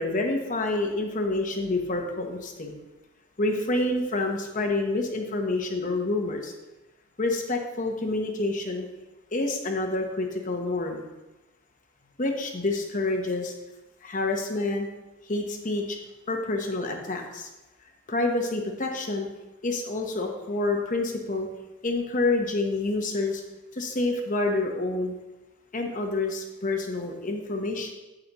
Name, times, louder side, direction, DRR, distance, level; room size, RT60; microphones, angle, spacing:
voice 1, 0.0-2.8 3.4-6.5 7.2-8.9 9.3-11.1 12.2-13.5 14.0-14.9 15.2-16.0 16.3-17.5 18.1-19.3 19.6-21.5 21.8-23.4 23.7-25.1 25.7-27.9, left 2 dB, 35° left, 3 dB, 1.0 m, -28 dB
8.8 x 8.0 x 3.0 m, 1.0 s
head